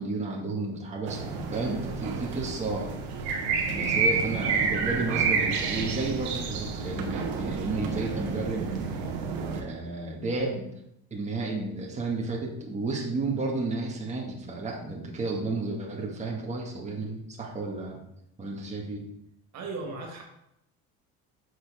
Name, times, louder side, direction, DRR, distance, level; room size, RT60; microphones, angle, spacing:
voice 1, 0.0-2.9 3.7-8.7 9.5-10.7 11.1-18.0 18.4-19.0, right 3 dB, 20° right, -2 dB, 1.8 m, -32 dB
sound 1, 1.0-9.6, right 5 dB, 85° right, 1.2 m, -29 dB
voice 2, 19.5-20.2, right 3 dB, 55° right, 0 dB, 1.9 m, -36 dB
7.7 x 6.3 x 3.6 m, 0.80 s
supercardioid pair, 105°, 33 cm